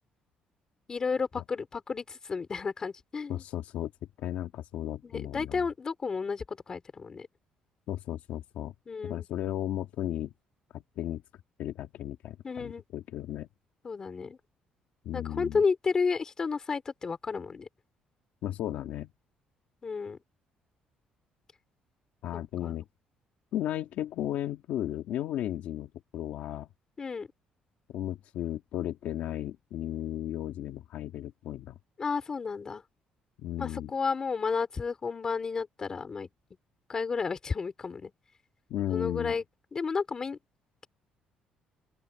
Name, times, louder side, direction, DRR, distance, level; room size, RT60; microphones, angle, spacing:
voice 1, 0.9-3.4 5.0-7.3 8.9-9.3 12.4-12.8 13.8-14.4 15.1-17.7 19.8-20.2 22.3-22.8 27.0-27.3 32.0-32.8 33.6-36.3 36.9-38.1 38.9-39.4 39.7-40.4, left 5 dB, 25° left, 3.9 m, -32 dB
voice 2, 3.3-3.9 4.2-5.6 7.9-8.7 9.0-10.3 10.7-11.2 11.6-13.5 15.1-15.6 18.4-19.1 22.2-22.9 23.5-26.7 27.9-31.7 33.4-33.9 38.7-39.3, left 12 dB, 70° left, 1.8 m, -35 dB
open air
cardioid pair, 170°, 3 cm